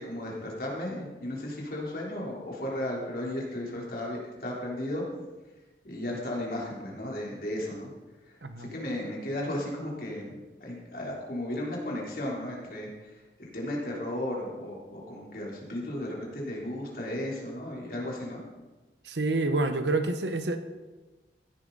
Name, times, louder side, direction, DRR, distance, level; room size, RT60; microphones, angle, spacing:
voice 1, 0.0-5.0 5.8-7.9 8.6-12.9 13.4-18.4, left 1 dB, 55° left, -3 dB, 3.7 m, -35 dB
voice 2, 19.0-20.6, right 2 dB, 80° right, 8 dB, 1.1 m, -28 dB
16.0 x 11.0 x 4.1 m, 1.2 s
head